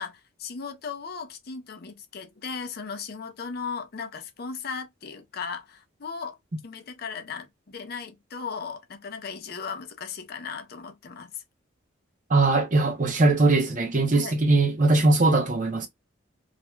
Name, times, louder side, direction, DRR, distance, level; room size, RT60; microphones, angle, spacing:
voice 1, 0.0-6.4 6.6-11.4 14.1-14.3, left 5 dB, 50° left, 0.5 m, -37 dB
voice 2, 12.3-15.9, right 2 dB, 40° right, 0.6 m, -21 dB
2.4 x 2.1 x 3.0 m
head